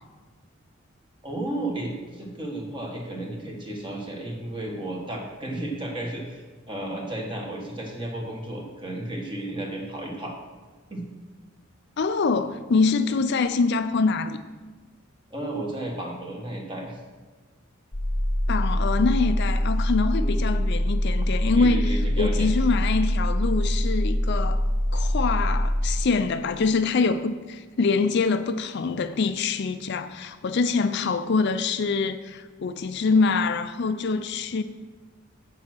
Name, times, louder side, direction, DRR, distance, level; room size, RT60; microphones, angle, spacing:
voice 1, 1.2-10.4 10.9-11.0 13.1-13.2 15.3-17.0 20.1-20.4 21.5-22.5, right 1 dB, 25° right, 1.6 m, -33 dB
voice 2, 12.0-14.4 18.5-24.7 24.9-34.6, left 4 dB, 55° left, 0.4 m, -25 dB
sound 1, 17.9-26.0, equal, 25° left, 0.8 m, -24 dB
7.5 x 7.3 x 6.1 m
head